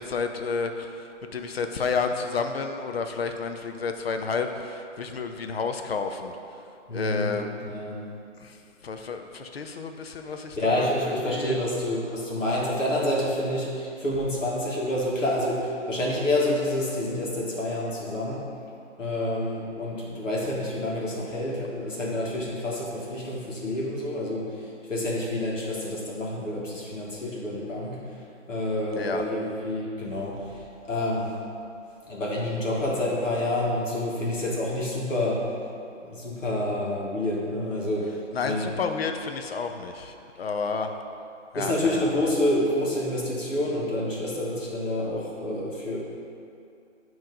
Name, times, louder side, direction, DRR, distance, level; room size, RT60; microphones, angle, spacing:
voice 1, 0.0-6.4 6.9-7.5 8.4-8.6 8.8-11.6 29.0-29.2 38.3-40.9 41.5-42.2, left 5 dB, 55° left, 6 dB, 0.5 m, -31 dB
voice 2, 6.9-8.0 10.6-18.4 19.0-28.0 28.5-31.3 32.1-35.5 36.0-38.2 38.4-38.7 41.5-46.0, left 1 dB, 85° left, -5 dB, 1.5 m, -28 dB
7.3 x 3.1 x 5.3 m, 2.6 s
figure-of-eight pair, 145°, 37 cm